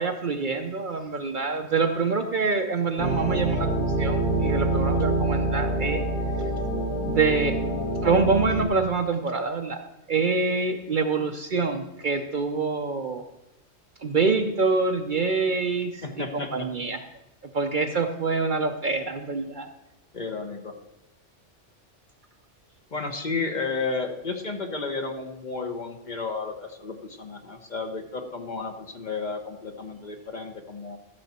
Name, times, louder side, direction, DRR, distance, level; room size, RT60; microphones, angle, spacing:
voice 1, 0.0-6.1 7.0-7.5 8.0-9.8 10.1-13.2 14.0-17.0 17.5-19.7, right 4 dB, 50° right, 6 dB, 0.7 m, -26 dB
sound 1, 3.0-8.7, right 1 dB, 60° left, 2.7 m, -26 dB
voice 2, 16.0-16.5 20.1-20.7 22.9-31.0, left 4 dB, 40° left, 5 dB, 1.0 m, -32 dB
13.0 x 7.1 x 4.2 m, 0.95 s
omnidirectional pair, 1.3 m